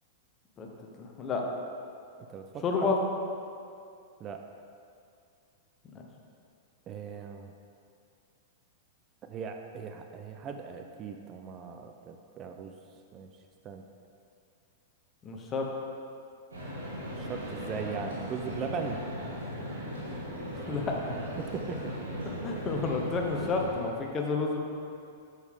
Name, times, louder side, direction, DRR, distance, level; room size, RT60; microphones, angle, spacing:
voice 1, 1.0-1.4 2.6-3.0 5.9-6.1 15.2-15.7 20.7-21.1 22.4-24.6, left 4 dB, 30° left, 1 dB, 1.0 m, -30 dB
voice 2, 2.3-2.9 4.2-4.4 6.9-7.5 9.2-12.7 13.1-13.3 13.6-13.8 17.1-19.0 21.4-22.1 22.4-22.5, right 6 dB, 35° right, 5 dB, 0.5 m, -39 dB
sound 1, 16.5-23.8, equal, 90° right, 1.8 m, -38 dB
6.8 x 6.4 x 3.6 m, 2.4 s
hypercardioid pair, 110°, 0 cm